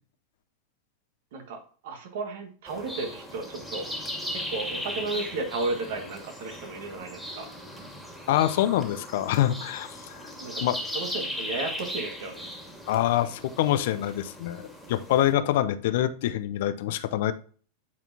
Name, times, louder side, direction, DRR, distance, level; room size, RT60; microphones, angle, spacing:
voice 1, 1.3-3.9 4.3-7.5 10.4-10.6 10.9-12.6, right 3 dB, 65° right, 5 dB, 1.7 m, -34 dB
sound 1, 2.7-15.3, equal, 5° right, 2.2 m, -38 dB
voice 2, 8.3-10.3 10.6-10.8 12.9-17.3, left 12 dB, 65° left, 13 dB, 0.6 m, -25 dB
9.4 x 4.3 x 2.7 m, 0.42 s
hypercardioid pair, 95°, 0 cm